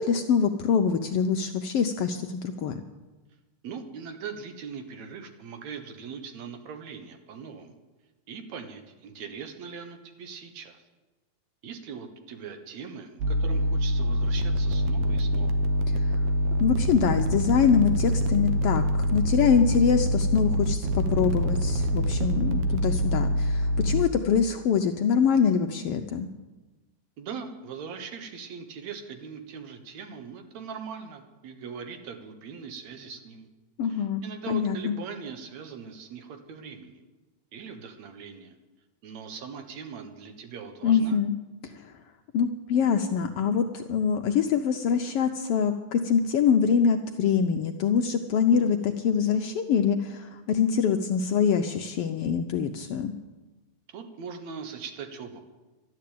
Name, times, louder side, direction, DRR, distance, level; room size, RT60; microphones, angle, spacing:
voice 1, 0.0-2.8 15.9-16.2 16.6-18.8 19.1-26.3 33.8-34.9 40.8-41.3 41.7-41.9 42.3-53.1, left 7 dB, 80° left, 5 dB, 1.3 m, -24 dB
voice 2, 3.6-7.7 8.3-10.8 11.6-15.6 27.2-33.5 33.8-37.0 37.5-38.6 39.0-41.2 53.9-55.5, right 6 dB, 70° right, 7 dB, 2.6 m, -40 dB
sound 1, 13.2-24.1, equal, 85° right, 2.5 m, -25 dB
12.5 x 11.5 x 8.5 m, 1.1 s
omnidirectional pair, 3.5 m